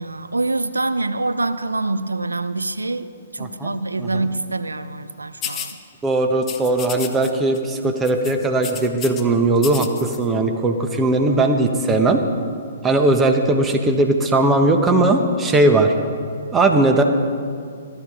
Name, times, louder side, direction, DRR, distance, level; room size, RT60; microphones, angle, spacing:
voice 1, 0.0-5.8, right 2 dB, 90° right, 12 dB, 0.5 m, -25 dB
voice 2, 3.4-3.7 4.0-4.3 6.0-12.2 12.8-15.9 16.5-17.0, right 2 dB, 15° right, 5 dB, 1.2 m, -18 dB
sound 1, 5.4-5.7 6.4-7.3 7.5-7.8 8.0-9.2 9.6-10.2, left 9 dB, 25° left, 1.0 m, -32 dB
15.0 x 12.0 x 5.0 m, 2.3 s
figure-of-eight pair, 125°, 0 cm